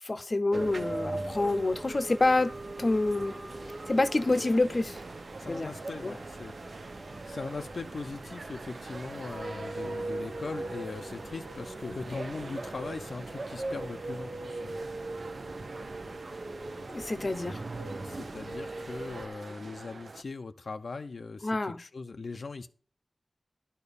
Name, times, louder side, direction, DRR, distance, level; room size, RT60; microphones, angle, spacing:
voice 1, 0.0-2.5 2.8-3.4 3.9-5.0 5.4-5.7 6.0-6.2 16.9-17.6 21.4-21.8, left 2 dB, 45° left, 0.7 m, -27 dB
sound 1, 0.5-19.3, right 2 dB, 70° right, 1.2 m, -40 dB
sound 2, 3.5-20.2, right 3 dB, 90° right, 0.6 m, -47 dB
voice 2, 5.4-6.5 7.2-14.9 18.0-22.7, left 4 dB, 85° left, 0.6 m, -40 dB
11.0 x 4.4 x 6.9 m
wide cardioid pair, 85°, 0 cm